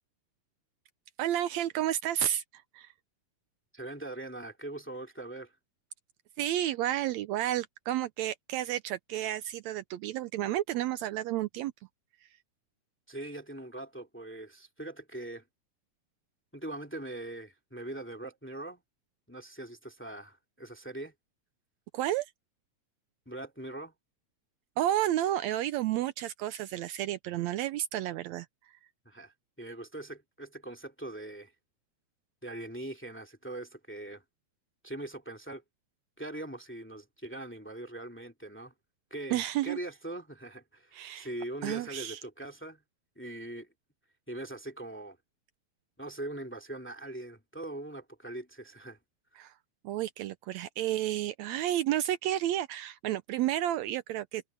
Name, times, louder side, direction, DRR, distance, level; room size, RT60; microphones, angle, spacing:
voice 1, 1.2-2.4 2.7-2.9 6.4-11.7 21.9-22.3 24.8-28.5 39.3-39.8 40.9-41.3 41.6-42.2 49.4-49.5 49.8-54.4, right 12 dB, 80° right, 1.8 m, -31 dB
voice 2, 3.7-5.5 13.1-15.4 16.5-18.8 19.3-21.1 23.3-23.9 29.0-31.5 32.4-34.2 34.8-35.6 36.2-38.7 39.1-42.8 43.2-43.7 44.3-45.2 46.0-49.0, right 1 dB, 5° left, 1.9 m, -41 dB
omnidirectional pair, 3.4 m